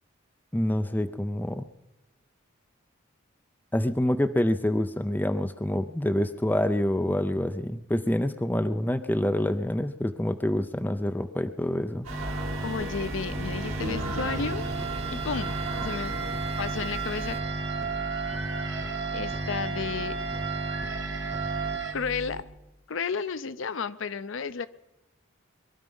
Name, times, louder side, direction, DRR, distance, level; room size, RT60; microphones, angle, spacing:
voice 1, 0.5-1.7 3.7-12.1, left 1 dB, 10° left, 8 dB, 0.5 m, -27 dB
sound 1, 12.0-17.4, right 2 dB, 85° right, 2.1 m, -39 dB
sound 2, 12.1-22.4, equal, 15° right, 2.0 m, -35 dB
sound 3, 12.1-21.9, right 5 dB, 60° right, 1.4 m, -35 dB
voice 2, 12.6-14.6 15.1-16.2 16.6-17.4 19.1-20.2 21.9-22.4 22.9-24.7, left 5 dB, 65° left, 14 dB, 0.5 m, -32 dB
22.5 x 11.5 x 5.4 m, 1.0 s
head